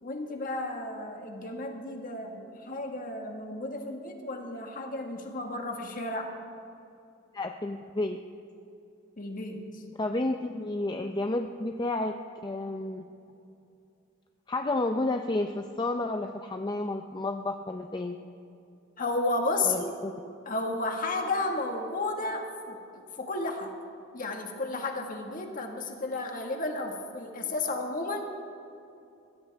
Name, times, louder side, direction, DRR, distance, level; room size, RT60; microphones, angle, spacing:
voice 1, 0.0-6.3 9.2-9.7 19.0-19.9 20.4-23.7 24.1-28.2, left 2 dB, 45° left, 3 dB, 1.7 m, -33 dB
voice 2, 7.3-8.2 10.0-12.1 12.4-13.1 14.5-18.2 19.6-20.1, left 2 dB, 20° left, 5 dB, 0.5 m, -31 dB
21.5 x 16.0 x 3.5 m, 2.6 s
head